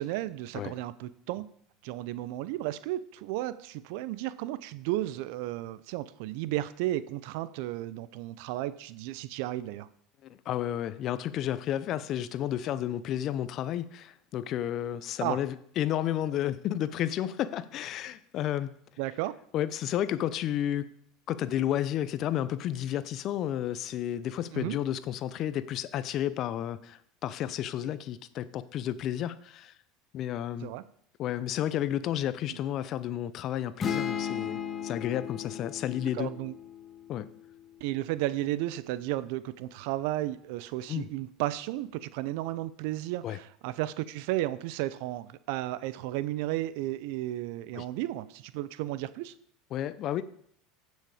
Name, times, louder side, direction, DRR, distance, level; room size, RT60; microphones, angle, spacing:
voice 1, 0.0-1.5 1.8-9.9 15.2-15.4 19.0-19.3 24.5-24.8 30.6-30.8 36.2-36.6 37.8-49.3, right 15 dB, 70° right, 0.6 m, -33 dB
voice 2, 10.2-18.7 19.5-20.9 21.3-29.7 30.1-30.7 31.2-36.3 37.1-37.3 40.9-41.1 43.2-43.4 47.7-47.8 49.7-50.2, left 11 dB, 50° left, 0.7 m, -32 dB
sound 1, 33.8-37.5, left 8 dB, 30° left, 1.5 m, -35 dB
15.5 x 6.4 x 5.0 m
hypercardioid pair, 85°, 0 cm